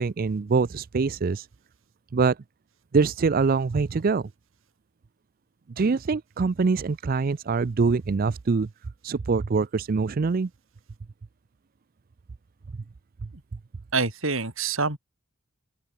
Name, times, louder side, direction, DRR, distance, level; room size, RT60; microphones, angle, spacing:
voice 1, 0.0-1.5 2.1-2.4 2.9-4.3 5.8-8.7 9.0-10.5, right 4 dB, 45° right, 0.4 m, -24 dB
voice 2, 13.9-15.0, right 4 dB, 70° right, 4.5 m, -26 dB
open air
head